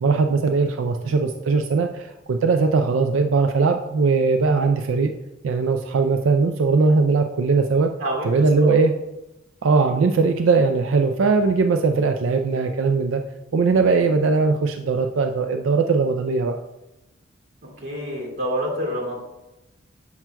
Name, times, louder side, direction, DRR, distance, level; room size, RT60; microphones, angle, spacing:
voice 1, 0.0-5.1 5.4-7.9 8.2-8.9 9.6-13.2 13.5-16.6, right 4 dB, 85° right, 6 dB, 0.4 m, -20 dB
voice 2, 17.8-19.2, equal, 65° right, -2 dB, 2.2 m, -27 dB
7.1 x 5.9 x 2.2 m, 0.97 s
head